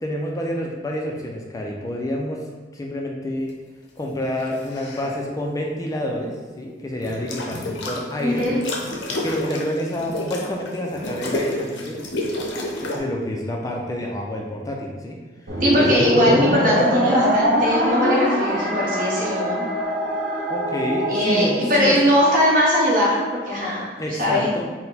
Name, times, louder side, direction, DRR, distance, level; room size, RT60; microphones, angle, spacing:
voice 1, 0.0-2.4 2.7-3.5 4.0-8.5 9.2-12.0 12.9-15.2 15.5-15.9 20.5-22.0 24.0-24.6, left 1 dB, 20° left, -1 dB, 0.4 m, -28 dB
sound 1, 4.4-5.1 7.0-8.0 8.4-13.0, left 1 dB, 75° left, 0.6 m, -29 dB
voice 2, 8.2-8.5 15.6-19.6 21.1-23.8 24.2-24.6, equal, 50° right, -6 dB, 1.2 m, -20 dB
sound 2, 15.5-22.0, equal, 65° right, 0.6 m, -22 dB
4.1 x 2.1 x 4.0 m, 1.4 s
head